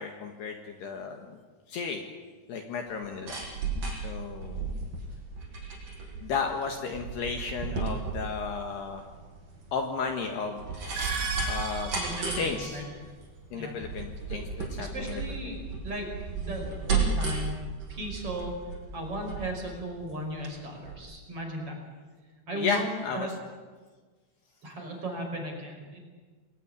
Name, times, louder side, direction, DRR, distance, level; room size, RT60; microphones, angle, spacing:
voice 1, 0.0-1.4 1.7-2.0 2.5-3.4 4.0-4.7 6.2-9.1 9.7-10.7 11.5-11.9 12.4-12.9 13.5-15.5 22.5-23.3, left 5 dB, 60° left, 4 dB, 3.4 m, -33 dB
sound 1, 2.9-20.6 20.9-21.0, right 4 dB, 45° right, 7.2 m, -34 dB
sound 2, 10.8-13.0, right 2 dB, 85° right, 4.9 m, -36 dB
voice 2, 11.9-12.8 13.5-13.7 14.8-18.6 18.9-21.8 22.5-23.3 24.6-26.0, right 1 dB, 30° right, 2 dB, 5.7 m, -36 dB
28.5 x 21.0 x 9.9 m, 1.4 s
omnidirectional pair, 5.9 m